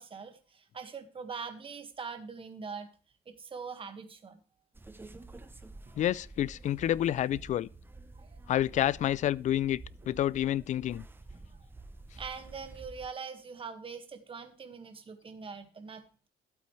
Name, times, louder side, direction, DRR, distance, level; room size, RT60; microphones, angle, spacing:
voice 1, 0.0-2.9 3.3-4.4 5.4-5.5 5.9-6.0 8.1-8.4 12.2-16.3, right 5 dB, 30° right, 1.8 m, -43 dB
sound 1, 4.7-13.1, right 2 dB, 10° right, 0.8 m, -50 dB
voice 2, 6.0-7.7 8.5-11.1, left 12 dB, 45° left, 0.4 m, -29 dB
12.5 x 8.3 x 3.3 m
cardioid pair, 110°, 17 cm